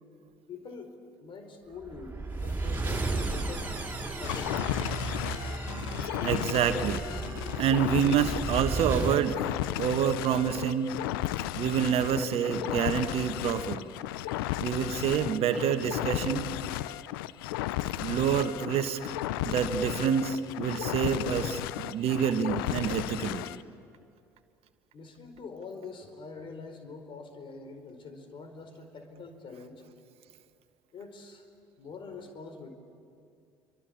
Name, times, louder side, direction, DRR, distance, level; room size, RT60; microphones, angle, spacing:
voice 1, 0.5-0.9 1.2-4.8 7.0-7.1 12.3-12.4 24.9-29.8 30.9-31.5 31.8-32.7, left 4 dB, 45° left, 7 dB, 4.6 m, -45 dB
sound 1, 1.8-9.2, right 3 dB, 15° right, 6.1 m, -34 dB
sound 2, 4.2-23.6, left 14 dB, 70° left, 0.7 m, -34 dB
voice 2, 6.2-7.1 7.6-10.9 11.6-13.9 14.6-16.5 18.0-19.0 19.4-23.5, right 8 dB, 55° right, 9 dB, 1.4 m, -27 dB
28.5 x 24.0 x 8.6 m, 2.3 s
figure-of-eight pair, 55°, 12 cm